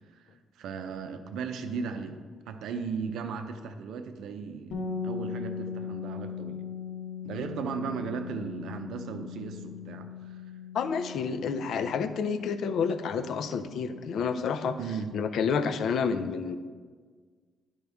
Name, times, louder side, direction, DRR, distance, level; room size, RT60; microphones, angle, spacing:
voice 1, 0.1-4.8 5.0-6.6 7.2-10.4 14.8-15.1, right 5 dB, 80° right, 7 dB, 0.7 m, -36 dB
sound 1, 4.7-14.5, left 6 dB, 85° left, 1.0 m, -39 dB
voice 2, 10.7-14.8 15.1-16.6, left 6 dB, 60° left, 10 dB, 0.5 m, -29 dB
11.0 x 5.3 x 3.5 m, 1.5 s
cardioid pair, 160°, 0 cm